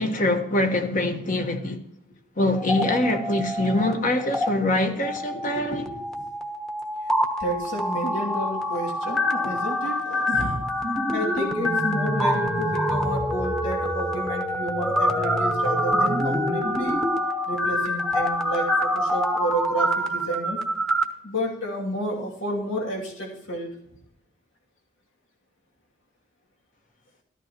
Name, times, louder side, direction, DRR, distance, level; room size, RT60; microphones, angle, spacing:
voice 1, 0.0-1.8 2.4-5.8, left 1 dB, 40° left, 1.3 m, -24 dB
sound 1, 2.5-3.9 4.2-4.5 5.0-21.0, equal, 5° left, 1.1 m, -26 dB
voice 2, 5.3-6.3 7.4-10.6 11.1-17.0 17.5-20.6 21.2-23.7, equal, 80° left, 2.6 m, -31 dB
13.5 x 13.5 x 3.0 m
head